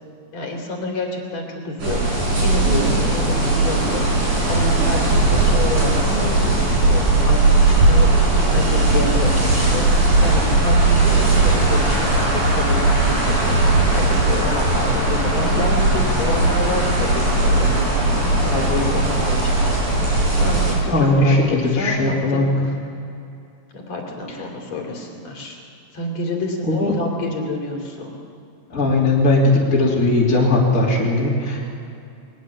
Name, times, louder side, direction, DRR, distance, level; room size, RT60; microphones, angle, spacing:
voice 1, 0.3-5.9 6.2-22.8 23.7-25.6 25.9-28.2, left 2 dB, 40° left, 1 dB, 3.5 m, -29 dB
sound 1, 1.8-20.7, right 2 dB, 40° right, 7.1 m, -18 dB
voice 2, 20.9-22.6 26.7-26.9 28.7-31.7, left 2 dB, 20° left, -5 dB, 2.5 m, -18 dB
21.5 x 20.0 x 7.4 m, 2.7 s
omnidirectional pair, 5.8 m